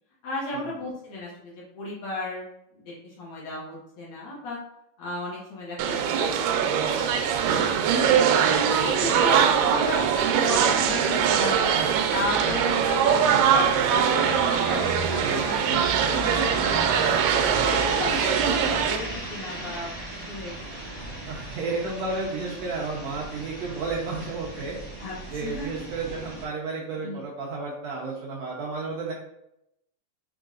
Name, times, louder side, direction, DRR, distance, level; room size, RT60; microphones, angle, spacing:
voice 1, 0.2-2.5 2.7-4.6 5.0-11.7 12.1-16.9 17.6-19.9 20.3-21.0 25.0-25.7 26.1-26.2 27.0-27.3, left 2 dB, 60° left, -6 dB, 2.2 m, -35 dB
sound 1, 5.8-19.0, right 8 dB, 90° right, 2.2 m, -22 dB
sound 2, 6.8-26.4, right 1 dB, 35° right, 0.9 m, -37 dB
voice 2, 15.2-15.6 21.3-24.8 25.3-29.1, right 3 dB, 70° right, -4 dB, 1.7 m, -32 dB
5.8 x 3.8 x 2.4 m, 0.80 s
omnidirectional pair, 3.8 m